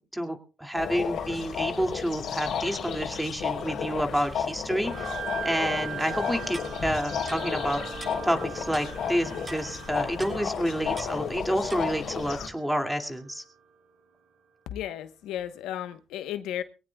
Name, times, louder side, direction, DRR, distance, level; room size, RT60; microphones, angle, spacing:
voice 1, 0.1-5.2 5.4-13.4, equal, 5° right, 2.4 m, -29 dB
sound 1, 0.7-12.5, left 7 dB, 65° left, 3.3 m, -33 dB
sound 2, 4.8-13.6, right 7 dB, 85° right, 3.3 m, -41 dB
Clock, 6.5-6.7 7.3-7.4 8.0-8.1 8.7-8.9 9.5-9.6 10.2-10.4 11.0-11.1 11.7-11.8, right 1 dB, 25° right, 6.8 m, -41 dB
voice 2, 14.7-16.6, left 11 dB, 90° left, 1.1 m, -34 dB
23.5 x 17.5 x 2.3 m
cardioid pair, 90°, 0 cm